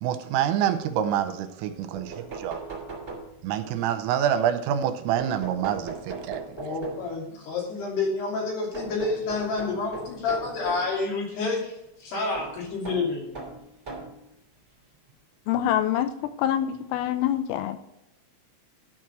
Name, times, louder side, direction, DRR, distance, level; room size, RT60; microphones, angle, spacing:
voice 1, 0.0-2.6 3.4-6.4, right 10 dB, 85° right, 9 dB, 3.3 m, -26 dB
sound 1, 1.9-3.7 5.2-7.2 8.7-10.9 12.3-14.2 15.1-15.2 16.5-16.6 16.9-17.0, right 4 dB, 20° right, 1.8 m, -38 dB
voice 2, 6.6-11.7 12.0-13.4, left 3 dB, 55° left, -2 dB, 4.6 m, -29 dB
voice 3, 15.5-17.8, left 11 dB, 85° left, 10 dB, 3.3 m, -26 dB
12.5 x 4.8 x 6.0 m, 0.82 s
omnidirectional pair, 6.0 m